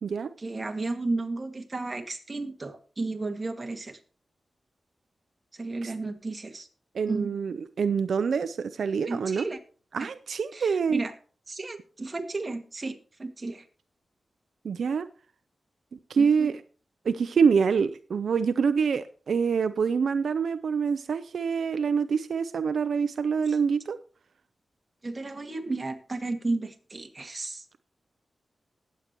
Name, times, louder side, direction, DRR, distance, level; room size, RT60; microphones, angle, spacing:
voice 1, 0.4-4.0 5.5-6.7 7.1-7.3 9.1-9.6 10.5-11.1 11.5-13.6 16.1-16.5 23.5-23.6 25.0-27.6, right 3 dB, 30° right, 5 dB, 1.9 m, -33 dB
voice 2, 6.9-9.4 9.9-11.0 14.6-15.1 16.1-16.6 17.0-24.0, right 6 dB, 85° right, 12 dB, 0.5 m, -26 dB
19.5 x 8.2 x 3.0 m, 0.40 s
wide cardioid pair, 85°, 0 cm